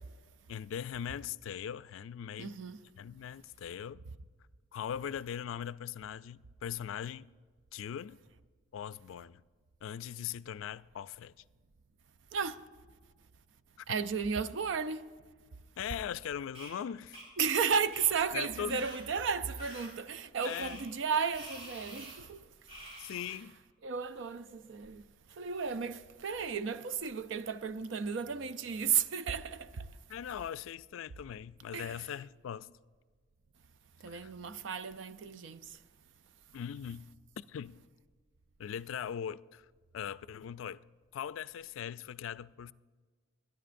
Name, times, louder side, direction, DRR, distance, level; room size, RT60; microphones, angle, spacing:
voice 1, 0.5-2.6 3.0-4.0 4.7-7.3 7.7-8.2 8.7-9.4 9.8-11.3 13.8-13.9 15.8-17.2 18.3-18.8 20.4-20.8 23.0-23.6 30.1-32.7 34.1-34.3 36.5-37.8 38.6-39.7 39.9-40.8 41.1-42.7, left 9 dB, 80° left, 0.3 m, -40 dB
voice 2, 2.4-2.8 12.3-12.7 13.9-15.1 17.4-22.5 23.8-25.0 25.3-29.9 31.7-31.9 34.0-35.8, right 6 dB, 70° right, 0.4 m, -34 dB
sound 1, 16.5-16.7 17.1-17.3 17.9-18.1 18.7-19.0 19.6-19.9 20.4-20.8 21.3-22.1 22.7-23.4, equal, 30° right, 4.5 m, -47 dB
25.0 x 10.5 x 2.6 m
head